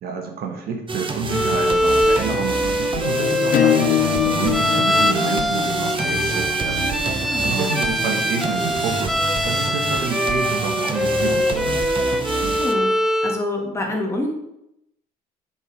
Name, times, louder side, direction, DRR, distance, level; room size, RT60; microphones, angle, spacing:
voice 1, 0.0-9.2 9.4-11.8, right 5 dB, 65° right, 3 dB, 1.6 m, -29 dB
sound 1, 0.9-12.7, right 4 dB, 30° right, 0.9 m, -28 dB
Bowed string instrument, 1.3-13.4, left 1 dB, ahead, 0.5 m, -23 dB
Acoustic guitar / Strum, 3.5-8.8, left 14 dB, 60° left, 0.6 m, -25 dB
voice 2, 7.2-7.8 12.6-12.9 13.2-14.3, left 2 dB, 15° left, 0 dB, 2.0 m, -26 dB
7.2 x 5.3 x 5.2 m, 0.82 s
cardioid pair, 110°, 17 cm